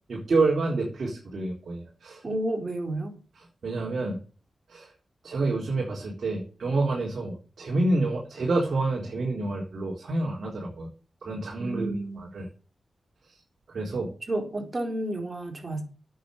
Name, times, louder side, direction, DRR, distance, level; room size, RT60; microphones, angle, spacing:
voice 1, 0.1-2.2 3.6-4.2 4.7-4.9 5.2-10.9 11.2-12.5 13.7-14.1, right 2 dB, 70° right, 4.1 m, -28 dB
voice 2, 2.2-3.1 11.6-12.3 14.3-15.8, right 1 dB, 45° right, 4.4 m, -31 dB
9.0 x 8.2 x 7.9 m
cardioid pair, 45°, 0 cm